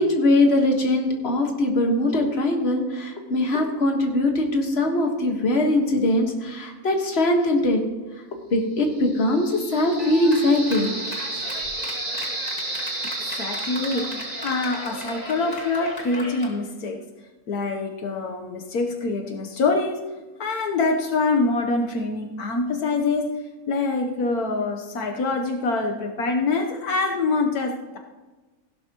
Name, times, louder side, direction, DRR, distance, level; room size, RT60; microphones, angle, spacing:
voice 1, 0.0-7.8 8.5-10.9, left 1 dB, 45° left, 2 dB, 1.8 m, -21 dB
sound 1, 8.9-15.9, right 2 dB, 35° right, 2.0 m, -33 dB
Clapping, 10.0-16.5, left 1 dB, 25° left, 2.1 m, -37 dB
voice 2, 13.2-17.0 17.5-20.1 20.4-23.4 23.7-28.0, left 3 dB, 80° left, 3 dB, 1.5 m, -25 dB
16.0 x 12.0 x 3.0 m, 1.2 s
omnidirectional pair, 1.6 m